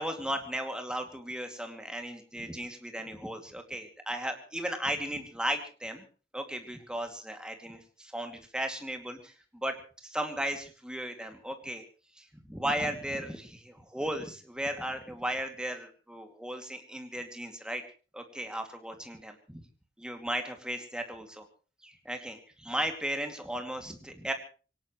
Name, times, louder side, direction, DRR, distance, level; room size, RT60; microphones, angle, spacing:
voice 1, 0.0-6.0 6.3-9.8 10.0-11.8 12.2-17.8 18.1-19.6 20.0-21.5 21.8-24.3, right 1 dB, 5° right, 5 dB, 2.4 m, -36 dB
23.5 x 18.0 x 3.2 m, 0.37 s
head